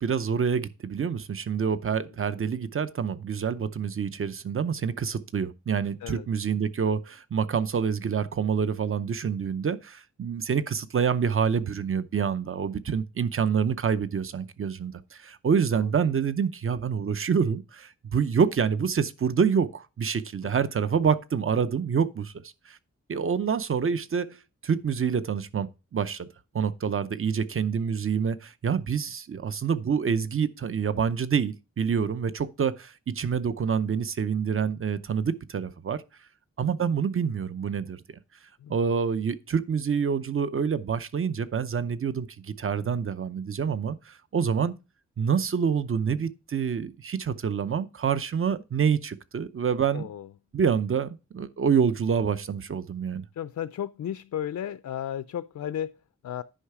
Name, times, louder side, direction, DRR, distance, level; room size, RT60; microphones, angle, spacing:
voice 1, 0.0-22.3 22.7-22.8 23.1-26.3 26.5-36.0 36.6-38.0 38.7-44.7 45.2-50.1 50.5-53.2, right 6 dB, 45° right, 0.7 m, -27 dB
voice 2, 49.9-50.3 53.3-56.4, left 10 dB, 70° left, 0.5 m, -34 dB
10.0 x 5.6 x 4.8 m
wide cardioid pair, 125°, 30 cm